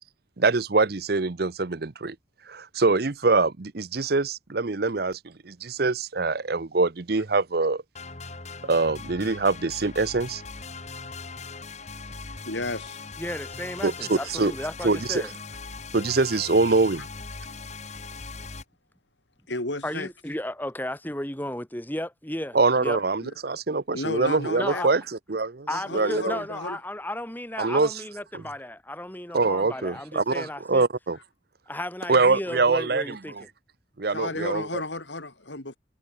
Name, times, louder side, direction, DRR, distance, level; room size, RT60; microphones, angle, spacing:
voice 1, 0.4-2.2 2.5-7.8 8.7-10.4 13.8-14.5 14.8-15.2 15.9-17.1 22.5-25.0 25.3-25.7 25.9-26.4 27.6-27.9 29.3-31.2 32.1-33.2 34.0-34.8, right 3 dB, 55° right, 0.7 m, -24 dB
sound 1, 7.9-18.6, left 4 dB, 35° left, 2.1 m, -40 dB
voice 2, 12.4-13.0 19.5-20.1 23.2-23.3 23.9-24.9 25.7-26.8 34.1-35.8, left 2 dB, 70° left, 4.4 m, -33 dB
voice 3, 13.2-15.3 19.8-23.0 24.6-24.9 25.7-30.8 31.7-33.5, left 1 dB, 10° left, 2.7 m, -34 dB
head